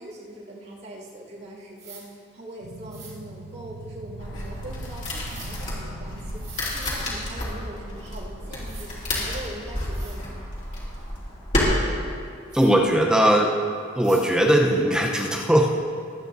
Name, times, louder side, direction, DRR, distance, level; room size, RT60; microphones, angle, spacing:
voice 1, 0.0-10.4, right 1 dB, 50° right, -6 dB, 2.3 m, -41 dB
sound 1, 1.8-2.0 2.9-3.1 5.3-5.5 6.3-6.7 8.2-8.3 8.6-8.9 9.5-9.6 9.9-10.2 12.5-12.7 14.0-14.3, right 6 dB, 30° right, 2.2 m, -44 dB
sound 2, 2.6-11.2, right 3 dB, 85° right, 0.6 m, -44 dB
sound 3, 4.2-11.6, left 1 dB, 35° left, 2.8 m, -31 dB
voice 2, 12.5-13.5 13.9-15.7, right 1 dB, 5° right, -1 dB, 0.7 m, -19 dB
22.5 x 9.2 x 2.7 m, 2.3 s
head